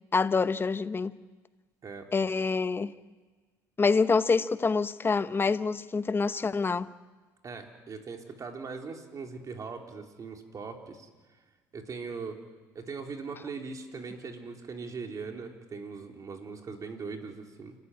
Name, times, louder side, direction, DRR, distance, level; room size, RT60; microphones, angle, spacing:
voice 1, 0.1-1.1 2.1-2.9 3.8-6.9, left 4 dB, 25° left, 1.0 m, -26 dB
voice 2, 7.4-11.1 11.7-12.4 12.8-17.7, right 4 dB, 40° right, 3.6 m, -40 dB
29.0 x 13.5 x 9.8 m
supercardioid pair, 85°, 9 cm